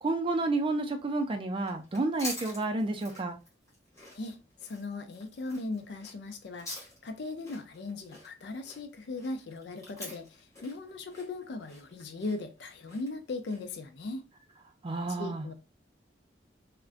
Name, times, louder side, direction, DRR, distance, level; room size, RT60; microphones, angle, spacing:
voice 1, 0.0-3.4 14.8-15.5, right 2 dB, 30° right, 0.4 m, -30 dB
sound 1, 1.6-13.8, left 1 dB, 15° left, 1.1 m, -46 dB
voice 2, 4.1-14.2 15.2-15.5, left 3 dB, 65° left, 0.4 m, -38 dB
2.4 x 2.1 x 2.4 m
head